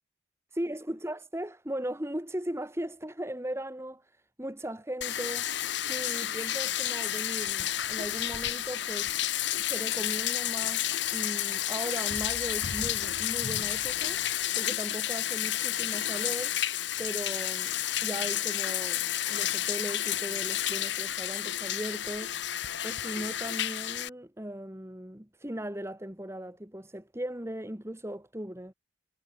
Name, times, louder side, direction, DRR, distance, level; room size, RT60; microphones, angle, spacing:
voice 1, 0.5-5.5 5.8-14.2 14.6-16.5 17.0-17.8 18.0-22.4 22.8-28.7, right 1 dB, 15° right, 1.8 m, -38 dB
Bathtub (filling or washing), 5.0-24.1, left 12 dB, 65° left, 0.9 m, -31 dB
head